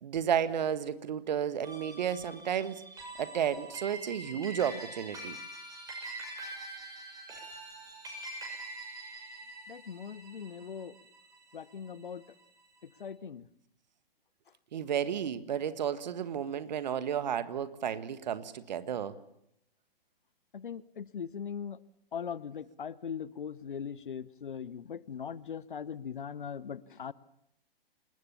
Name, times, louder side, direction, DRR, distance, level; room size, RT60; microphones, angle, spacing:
voice 1, 0.0-2.8 3.2-5.4 14.7-19.1, right 8 dB, 45° right, 14 dB, 1.8 m, -32 dB
sound 1, 1.6-12.2, right 2 dB, 10° right, 7.0 m, -45 dB
voice 2, 9.7-11.0 11.5-12.2 13.0-13.5 20.5-21.8 22.1-27.1, left 7 dB, 60° left, 20 dB, 1.0 m, -40 dB
27.5 x 20.5 x 7.2 m, 0.74 s
figure-of-eight pair, 120°, 30 cm